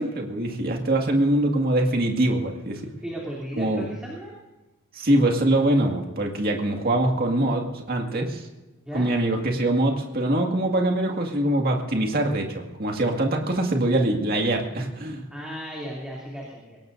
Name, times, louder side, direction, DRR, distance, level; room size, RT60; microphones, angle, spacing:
voice 1, 0.0-2.8 3.6-3.9 4.9-8.5 8.9-15.2, right 1 dB, 45° right, 2 dB, 2.0 m, -23 dB
voice 2, 3.0-4.3 8.9-9.2 15.3-16.8, equal, 5° right, -5 dB, 3.0 m, -35 dB
22.5 x 18.5 x 2.7 m, 1.1 s
head